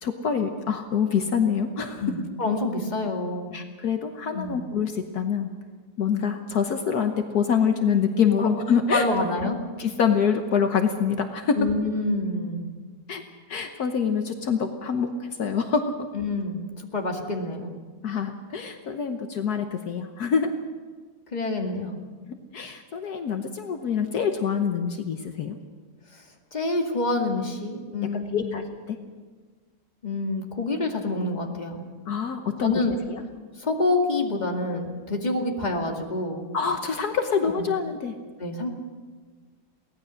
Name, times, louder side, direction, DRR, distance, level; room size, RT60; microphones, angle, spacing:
voice 1, 0.0-2.0 3.5-5.5 6.0-9.0 9.4-9.5 9.8-11.6 13.1-13.2 13.5-16.1 18.0-20.5 22.3-25.6 28.1-29.0 32.1-32.7 33.1-33.2 36.5-38.1, left 6 dB, 70° left, 6 dB, 1.6 m, -26 dB
voice 2, 2.0-3.6 4.3-4.6 8.4-8.5 8.9-9.6 11.5-12.7 16.1-17.8 21.3-21.9 26.1-26.2 26.5-28.6 30.0-31.8 32.6-32.9 33.6-36.5 37.6-37.7 38.4-38.7, left 2 dB, 25° left, 2 dB, 2.3 m, -27 dB
23.0 x 17.5 x 6.4 m, 1.5 s
omnidirectional pair, 1.8 m